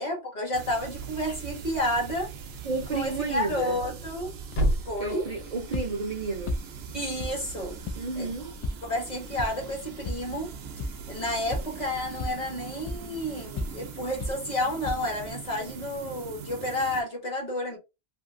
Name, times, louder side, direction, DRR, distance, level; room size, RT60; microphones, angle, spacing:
voice 1, 0.0-2.3 2.9-4.3 4.8-5.3 6.9-7.8 8.2-8.3 8.8-10.5 11.1-17.8, left 1 dB, 45° left, 1.1 m, -31 dB
sound 1, 0.5-17.0, right 7 dB, 80° right, 0.8 m, -42 dB
voice 2, 2.6-3.8 5.0-6.5 7.9-8.5, right 3 dB, 45° right, 0.6 m, -31 dB
Thump thud, 3.6-7.7, equal, 75° left, 1.2 m, -33 dB
sound 2, 4.5-15.3, left 1 dB, 60° left, 0.3 m, -38 dB
2.7 x 2.6 x 2.5 m
omnidirectional pair, 1.0 m